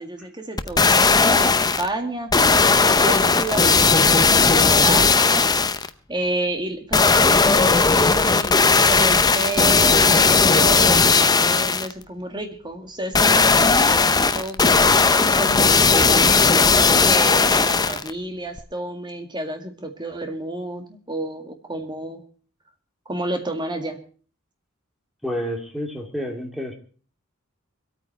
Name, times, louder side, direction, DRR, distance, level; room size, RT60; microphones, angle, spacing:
voice 1, 0.0-2.3 2.9-5.4 6.1-16.3 17.0-22.2 23.1-24.0, right 2 dB, 20° right, 5 dB, 2.0 m, -30 dB
sound 1, 0.6-1.9 2.3-5.9 6.9-11.9 13.1-18.1 18.6-18.7, left 4 dB, 20° left, 0.7 m, -16 dB
voice 2, 25.2-26.7, equal, ahead, 2 dB, 2.4 m, -29 dB
25.0 x 9.0 x 4.5 m, 0.41 s
head